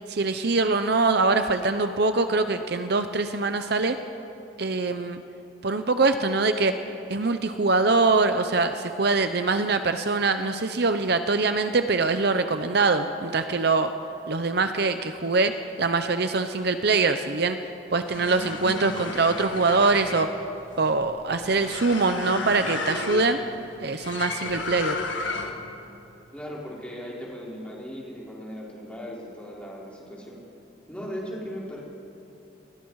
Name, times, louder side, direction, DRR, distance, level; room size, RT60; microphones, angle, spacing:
voice 1, 0.1-4.0 4.6-5.2 5.6-6.8 7.1-13.9 14.3-17.6 17.9-20.3 20.8-23.4 23.8-25.0, right 3 dB, 55° right, 8 dB, 0.8 m, -23 dB
sound 1, 17.9-25.7, left 3 dB, 70° left, 1.9 m, -33 dB
voice 2, 26.3-30.4 30.9-31.8, equal, 5° left, -5 dB, 4.3 m, -37 dB
28.5 x 21.5 x 4.8 m, 2.8 s
head